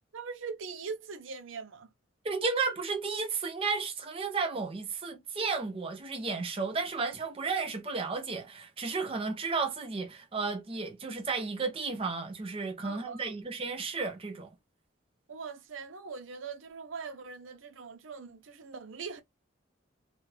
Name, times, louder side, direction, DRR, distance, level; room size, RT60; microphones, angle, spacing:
voice 1, 0.1-1.9 12.8-13.3 15.3-19.2, right 5 dB, 90° right, 0.6 m, -41 dB
voice 2, 2.2-14.5, right 4 dB, 30° right, 0.6 m, -33 dB
2.5 x 2.4 x 3.2 m
head